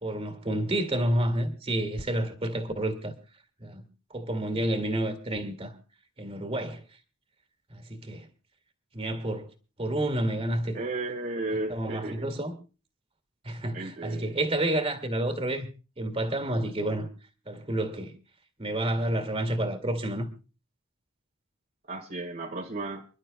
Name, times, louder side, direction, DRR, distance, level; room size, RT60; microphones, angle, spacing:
voice 1, 0.0-3.1 3.6-3.8 4.1-5.7 6.2-6.8 7.7-8.3 8.9-9.5 9.8-10.8 11.7-12.5 13.4-15.7 16.0-17.1 17.5-18.1 18.6-20.3, right 1 dB, 30° right, 2.1 m, -29 dB
voice 2, 10.7-12.2 13.7-14.5 21.9-23.0, right 2 dB, 45° right, 1.7 m, -34 dB
29.5 x 11.5 x 2.2 m
head